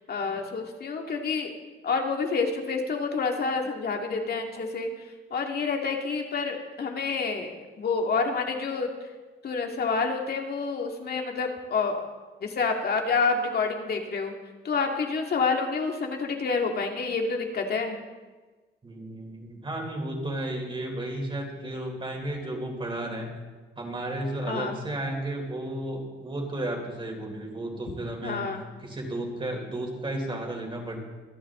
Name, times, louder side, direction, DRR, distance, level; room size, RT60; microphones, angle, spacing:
voice 1, 0.1-1.5 1.8-8.9 9.4-12.0 12.4-14.3 14.6-18.0 24.5-24.8 28.2-28.6, left 4 dB, 50° left, 2 dB, 2.2 m, -28 dB
voice 2, 18.8-23.4 23.8-28.5 28.8-31.0, right 1 dB, 25° right, 1 dB, 3.9 m, -33 dB
25.5 x 8.7 x 3.8 m, 1.3 s
cardioid pair, 90°, 20 cm